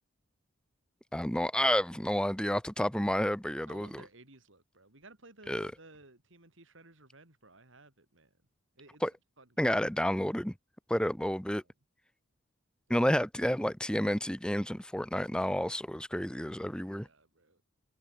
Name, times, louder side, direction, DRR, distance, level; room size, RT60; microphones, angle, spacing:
voice 1, 1.1-4.0 5.5-5.7 9.0-9.1 9.6-10.5 10.9-11.6 12.9-17.1, equal, 5° left, 0.9 m, -30 dB
voice 2, 3.7-8.4 8.8-9.0 9.4-9.8 11.6-11.7 12.9-13.0 16.4-17.6, right 2 dB, 65° right, 3.9 m, -57 dB
head